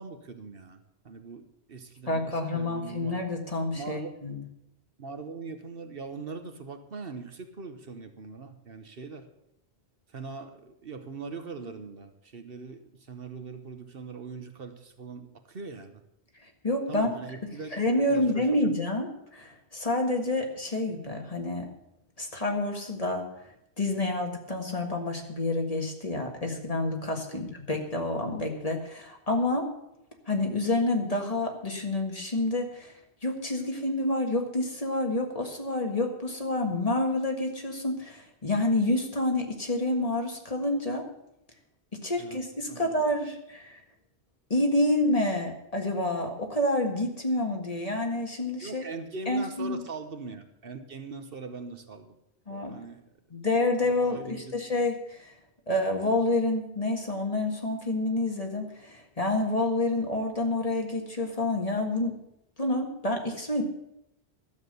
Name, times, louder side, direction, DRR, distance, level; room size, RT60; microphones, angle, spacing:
voice 1, 0.0-3.2 3.7-4.1 5.0-9.3 10.1-16.0 16.9-17.7 18.1-18.7 27.3-27.4 42.2-42.4 42.7-42.9 48.6-52.2 52.5-53.0 53.9-54.5, right 4 dB, 60° right, 8 dB, 1.2 m, -41 dB
voice 2, 2.1-4.4 16.6-17.1 17.7-21.7 22.2-23.2 23.8-29.7 30.3-32.9 33.2-41.0 42.0-43.8 44.5-48.8 49.3-49.8 52.5-52.7 53.3-55.3 55.7-62.1 62.6-63.6, left 2 dB, 35° left, 2 dB, 1.9 m, -28 dB
12.5 x 7.3 x 8.0 m, 0.82 s
omnidirectional pair, 1.1 m